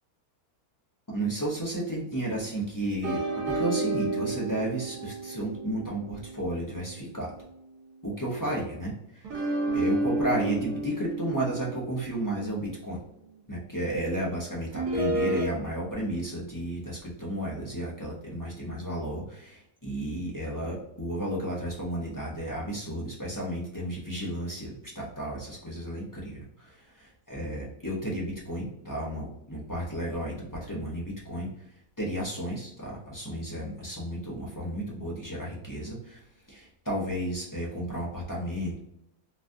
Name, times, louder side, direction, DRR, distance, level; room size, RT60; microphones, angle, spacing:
voice 1, 1.1-7.4 8.0-9.3 9.7-13.0 13.5-31.5 32.0-38.8, right 1 dB, 20° left, -5 dB, 0.6 m, -33 dB
sound 1, 3.0-7.6 9.2-13.4 14.7-15.5, right 2 dB, 85° right, 1.3 m, -31 dB
4.0 x 2.4 x 2.6 m, 0.78 s
omnidirectional pair, 1.6 m